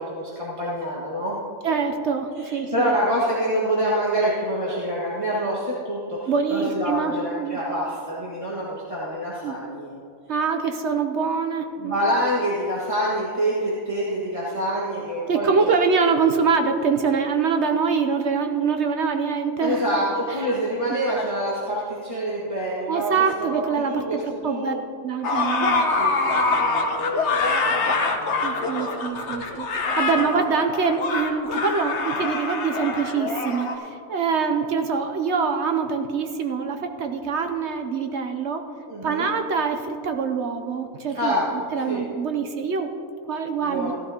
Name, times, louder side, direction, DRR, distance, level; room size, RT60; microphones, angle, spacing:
voice 1, 0.0-1.4 2.3-9.9 11.8-15.5 19.6-23.1 23.5-24.8 26.0-28.9 38.9-39.2 41.1-41.5 41.9-42.0 43.6-43.9, equal, 20° right, -8 dB, 1.6 m, -26 dB
voice 2, 1.6-2.9 6.3-7.6 9.4-9.6 10.3-12.0 15.3-19.9 22.9-24.7 25.0-25.8 28.4-38.7 39.0-41.3 41.7-42.9 43.3-43.9, right 5 dB, 60° right, 6 dB, 0.8 m, -24 dB
sound 1, 25.2-33.7, left 3 dB, 50° left, 1.3 m, -24 dB
16.0 x 12.0 x 2.8 m, 2.7 s
omnidirectional pair, 1.6 m